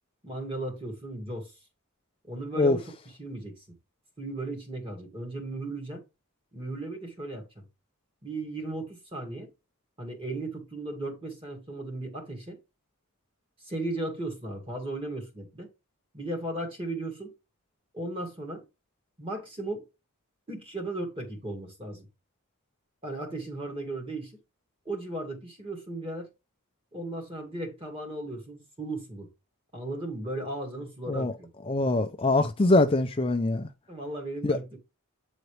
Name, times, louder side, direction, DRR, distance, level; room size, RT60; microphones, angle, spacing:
voice 1, 0.2-1.5 2.3-2.9 3.2-3.6 4.2-6.0 6.5-7.6 8.2-9.5 10.0-12.6 13.6-15.7 16.1-17.3 17.9-18.6 19.2-19.8 20.5-22.1 23.0-24.4 24.9-26.3 26.9-29.3 29.7-31.5 33.9-34.8, right 2 dB, 25° right, 2.0 m, -36 dB
voice 2, 31.7-33.7 34.4-34.6, left 2 dB, 25° left, 0.4 m, -23 dB
8.1 x 3.9 x 3.2 m
head